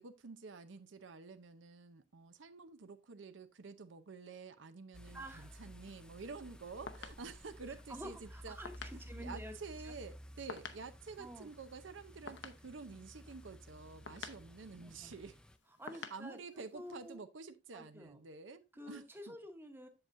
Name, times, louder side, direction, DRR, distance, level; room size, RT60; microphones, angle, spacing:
voice 1, 0.0-8.6 8.9-15.3 15.9-19.4, right 4 dB, 85° right, 0.7 m, -50 dB
sound 1, 4.9-15.6, equal, 5° left, 0.3 m, -54 dB
voice 2, 5.1-5.6 7.7-9.5 9.8-9.9 11.2-11.5 14.8-15.1 15.8-16.4 16.7-17.2 17.7-18.2 18.7-19.9, equal, 10° right, 1.0 m, -50 dB
sound 2, 6.5-17.1, left 5 dB, 75° left, 0.8 m, -53 dB
7.8 x 7.2 x 2.5 m
head